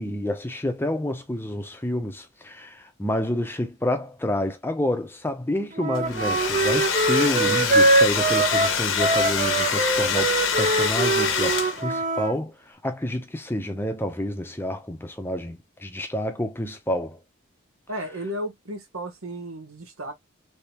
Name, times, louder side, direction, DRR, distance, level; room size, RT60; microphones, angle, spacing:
voice 1, 0.0-17.2, left 1 dB, 10° left, 0.6 m, -29 dB
Wind instrument woodwind instrument, 5.7-12.3, right 2 dB, 35° right, 0.6 m, -23 dB
Domestic sounds home sounds, 6.0-12.0, left 6 dB, 60° left, 0.8 m, -25 dB
voice 2, 17.9-20.1, equal, 80° right, 1.2 m, -34 dB
3.4 x 3.1 x 2.9 m
head